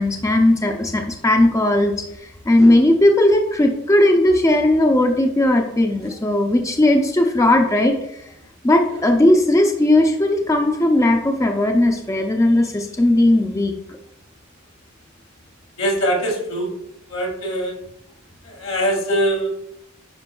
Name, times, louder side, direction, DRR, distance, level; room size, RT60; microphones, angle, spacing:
voice 1, 0.0-8.3 8.6-13.7, left 1 dB, 15° left, 3 dB, 0.4 m, -17 dB
voice 2, 15.8-16.7 17.1-17.8 18.4-19.5, equal, 75° left, -1 dB, 2.0 m, -22 dB
9.6 x 5.1 x 2.3 m, 0.80 s
head